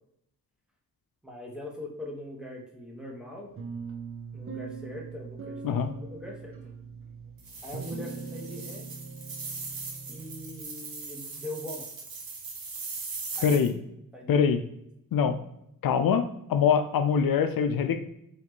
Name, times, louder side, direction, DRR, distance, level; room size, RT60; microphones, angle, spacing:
voice 1, 1.2-3.5 4.3-6.7 7.6-8.9 10.1-11.9 13.4-13.6 14.1-14.5, left 1 dB, ahead, -2 dB, 1.2 m, -42 dB
sound 1, 3.6-10.6, right 5 dB, 40° right, 0.7 m, -41 dB
sound 2, 7.4-13.7, right 4 dB, 75° right, 1.1 m, -40 dB
voice 2, 13.4-13.8 14.3-14.6 15.1-15.4 15.8-18.0, left 7 dB, 75° left, 7 dB, 0.5 m, -24 dB
4.1 x 3.2 x 2.9 m, 0.77 s
cardioid pair, 75°, 35 cm